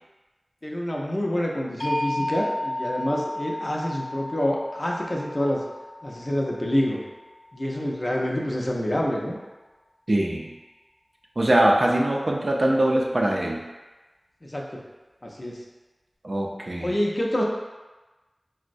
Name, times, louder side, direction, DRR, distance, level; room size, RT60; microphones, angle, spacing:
voice 1, 0.6-5.6 6.0-7.0 7.5-9.4 14.4-14.8 15.2-15.6 16.8-17.4, left 1 dB, 45° left, -2 dB, 0.5 m, -27 dB
sound 1, 1.8-7.8, left 1 dB, 80° left, 0.7 m, -33 dB
voice 2, 10.1-10.5 11.4-13.6 16.2-17.0, right 1 dB, 60° right, -1 dB, 0.4 m, -22 dB
4.3 x 2.0 x 2.5 m, 1.2 s
wide cardioid pair, 45°, 0 cm